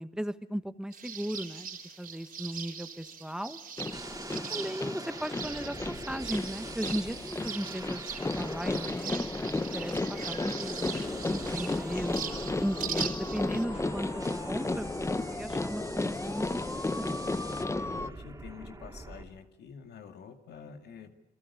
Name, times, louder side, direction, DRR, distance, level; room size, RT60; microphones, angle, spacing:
voice 1, 0.0-1.7 2.0-3.6 4.3-5.8 6.1-8.0 8.3-9.9 10.3-10.9 11.3-17.1 17.4-17.6, equal, 5° right, 11 dB, 1.3 m, -36 dB
sound 1, 0.9-13.6, right 6 dB, 55° right, 3.8 m, -41 dB
sound 2, 3.8-18.1, left 2 dB, 15° left, 0.9 m, -34 dB
sound 3, 3.9-19.2, right 2 dB, 20° right, 3.4 m, -45 dB
voice 2, 17.7-21.1, left 6 dB, 75° left, 7 dB, 2.2 m, -47 dB
29.0 x 22.5 x 8.4 m, 0.84 s
cardioid pair, 105°, 17 cm